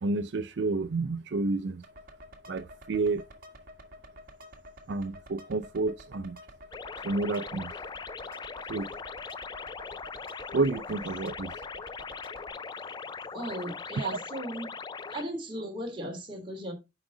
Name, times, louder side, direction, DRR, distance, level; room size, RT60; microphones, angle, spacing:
voice 1, 0.0-1.8 2.5-3.2 4.9-6.4 7.0-7.7 8.7-8.9 10.5-11.6 14.0-14.2, right 3 dB, 70° right, 0.5 m, -30 dB
sound 1, 1.8-12.5, left 1 dB, 50° right, 1.8 m, -50 dB
sound 2, 6.7-15.2, left 5 dB, 25° left, 0.3 m, -40 dB
voice 2, 13.3-14.7 15.1-16.7, equal, 30° right, 2.9 m, -36 dB
10.0 x 4.9 x 3.8 m
head